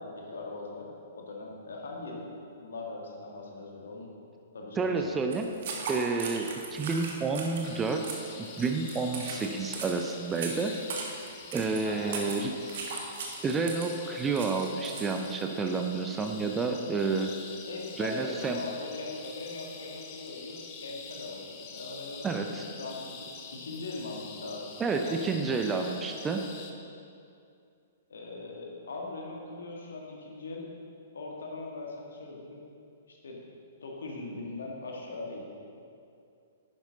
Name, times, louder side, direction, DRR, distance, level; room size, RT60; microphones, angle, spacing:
voice 1, 0.0-2.3 2.6-4.1 4.5-5.1 11.8-12.2 17.7-25.3 28.1-30.7 31.1-32.6 33.1-33.4 33.8-35.4, left 3 dB, 65° left, -1 dB, 1.7 m, -40 dB
voice 2, 4.8-5.5 5.9-8.0 8.4-10.8 11.5-12.5 13.4-17.3 18.0-18.6 22.2-22.7 24.8-26.4, right 4 dB, 15° right, 4 dB, 0.5 m, -30 dB
sound 1, 5.3-15.3, right 4 dB, 50° right, 1.3 m, -39 dB
sound 2, 7.6-26.7, left 5 dB, 35° left, 0.9 m, -46 dB
11.0 x 10.0 x 2.8 m, 2.5 s
figure-of-eight pair, 110°, 0 cm